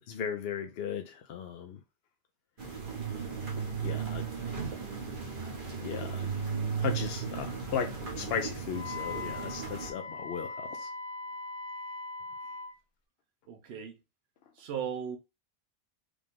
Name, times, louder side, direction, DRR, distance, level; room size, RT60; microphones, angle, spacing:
voice 1, 0.1-1.8 3.8-4.3 5.8-6.4 6.8-10.9, left 7 dB, 75° left, 0.8 m, -36 dB
sound 1, 2.6-9.9, right 6 dB, 55° right, 1.5 m, -36 dB
Wind instrument woodwind instrument, 8.7-12.8, left 3 dB, 30° left, 0.6 m, -40 dB
voice 2, 13.5-14.0 14.5-15.2, right 7 dB, 80° right, 0.9 m, -37 dB
5.1 x 2.4 x 3.5 m
omnidirectional pair, 1.1 m